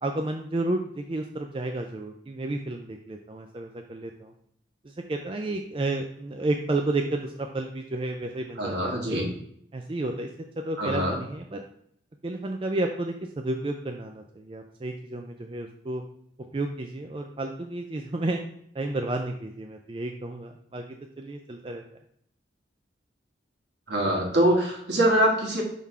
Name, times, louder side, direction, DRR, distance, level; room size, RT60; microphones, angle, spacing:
voice 1, 0.0-4.3 4.8-9.2 9.7-10.3 10.6-11.6 12.2-16.0 16.5-18.4 18.7-20.8 21.2-21.8, right 2 dB, 30° right, 4 dB, 0.4 m, -31 dB
voice 2, 8.6-9.3 10.8-11.1 23.9-25.6, right 1 dB, 70° right, -1 dB, 1.8 m, -23 dB
5.6 x 3.7 x 4.7 m, 0.69 s
head